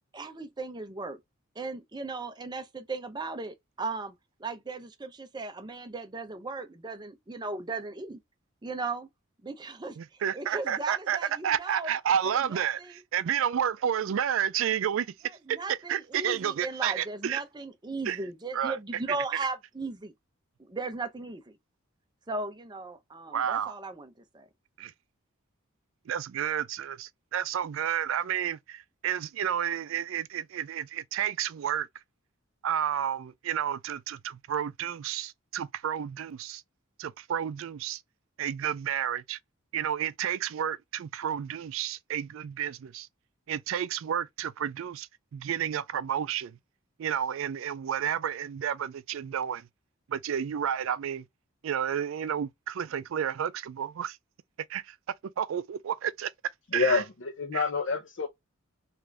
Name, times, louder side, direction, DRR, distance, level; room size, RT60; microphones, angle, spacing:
voice 1, 0.1-1.2 1.6-4.1 4.4-8.2 8.6-9.1 9.4-10.0 10.3-11.9 12.3-13.0 15.5-20.1 20.7-21.6 22.3-24.5, right 3 dB, 20° right, 0.5 m, -37 dB
voice 2, 10.0-11.2 11.4-15.1 15.5-17.4 18.1-18.2 18.5-18.8 23.3-23.7 24.8-24.9 26.1-31.9 32.6-36.6 37.0-38.0 38.4-39.4 39.7-43.1 43.5-46.6 47.0-49.7 50.1-51.3 51.6-54.2 54.7-54.9 55.4-56.3 56.7-57.0 57.5-57.6, right 9 dB, 70° right, 0.3 m, -31 dB
voice 3, 56.7-58.3, left 4 dB, 60° left, 0.6 m, -28 dB
3.4 x 2.5 x 3.2 m
head